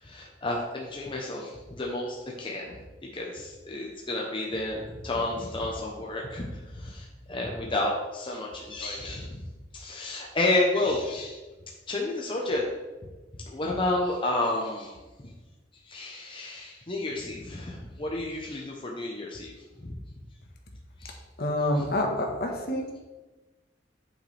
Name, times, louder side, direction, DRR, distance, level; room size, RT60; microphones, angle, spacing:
voice 1, 0.0-2.8 3.1-9.4 9.7-11.4 11.9-12.6 13.5-15.0 15.2-15.3 15.9-19.5 19.8-20.0 21.0-21.2, left 2 dB, 30° left, -2 dB, 0.9 m, -31 dB
voice 2, 21.4-23.0, left 1 dB, 55° left, 2 dB, 1.4 m, -27 dB
8.3 x 6.5 x 3.4 m, 1.2 s
head